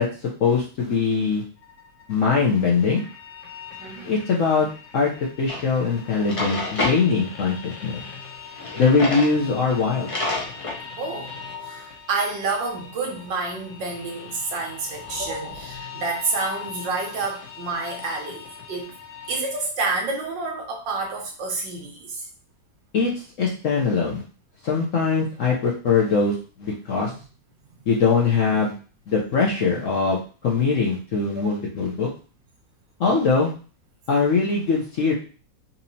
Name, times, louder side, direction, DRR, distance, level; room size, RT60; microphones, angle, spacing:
voice 1, 0.0-1.4 2.1-3.0 4.0-4.7 4.9-5.1 5.4-8.0 8.8-10.1 22.9-23.1 23.4-24.2 24.6-27.1 27.9-28.7 29.1-32.1 33.0-33.5 34.1-35.1, left 5 dB, 60° left, -2 dB, 0.8 m, -22 dB
sound 1, 1.6-19.6, left 6 dB, 80° left, 1.5 m, -41 dB
voice 2, 3.8-4.2 11.0-11.3 11.6-18.9 19.3-22.3 27.6-27.9 31.4-31.5, right 3 dB, 80° right, 1 dB, 1.6 m, -29 dB
Drawer open or close, 5.5-5.6 6.1-7.0 8.6-9.3 9.7-9.8 10.1-10.8, left 2 dB, 40° left, 0.4 m, -28 dB
4.2 x 2.8 x 2.7 m, 0.37 s
omnidirectional pair, 2.0 m